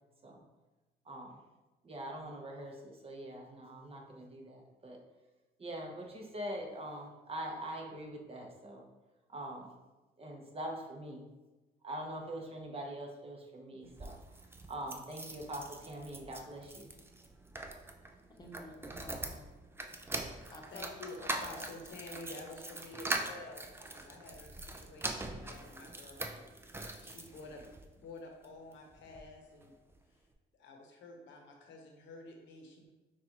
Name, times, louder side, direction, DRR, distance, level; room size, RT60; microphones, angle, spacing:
voice 1, 1.0-1.4 1.8-5.0 5.6-8.8 9.3-9.7 10.2-11.2 11.8-14.4 14.7-16.9, right 1 dB, 30° right, 0 dB, 0.9 m, -43 dB
sound 1, 13.8-27.9 28.4-29.3 29.6-29.7 29.9-30.0, right 2 dB, 10° right, 0.4 m, -43 dB
voice 2, 18.1-19.5 20.5-21.2 21.5-21.6, left 1 dB, 20° left, 0 dB, 0.9 m, -51 dB
voice 3, 20.4-27.7 27.9-29.7 30.6-32.9, left 2 dB, 75° left, 1 dB, 0.9 m, -50 dB
5.8 x 2.4 x 3.0 m, 1.1 s
cardioid pair, 85°, 20 cm